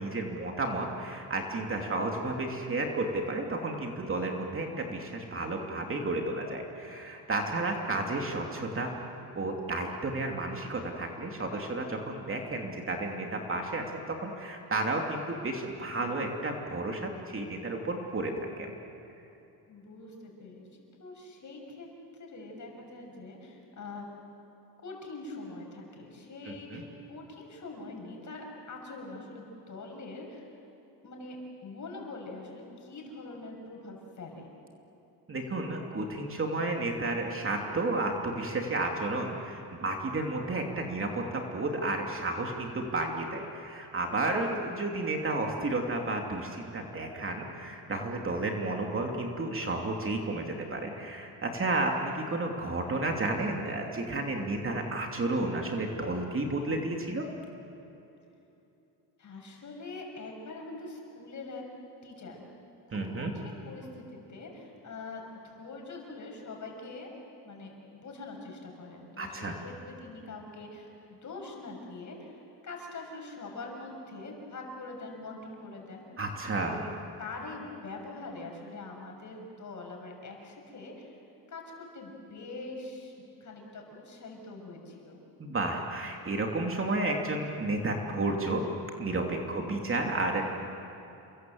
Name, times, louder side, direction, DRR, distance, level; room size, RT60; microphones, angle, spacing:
voice 1, 0.0-8.9 9.3-18.7 26.5-26.8 35.3-57.2 62.9-63.3 69.2-69.6 76.2-76.8 85.4-88.6 89.0-90.4, right 2 dB, 30° right, 1 dB, 2.9 m, -32 dB
voice 2, 19.7-20.7 21.0-24.1 24.8-30.4 31.0-31.4 31.6-34.5 48.4-48.8 59.2-61.6 62.0-62.5 62.9-67.1 67.4-76.0 76.6-76.8 77.2-81.1 81.5-83.1 83.4-85.2 89.4-89.8, left 3 dB, 45° left, 1 dB, 6.9 m, -44 dB
29.0 x 23.0 x 7.9 m, 3.0 s
cardioid pair, 110°, 42 cm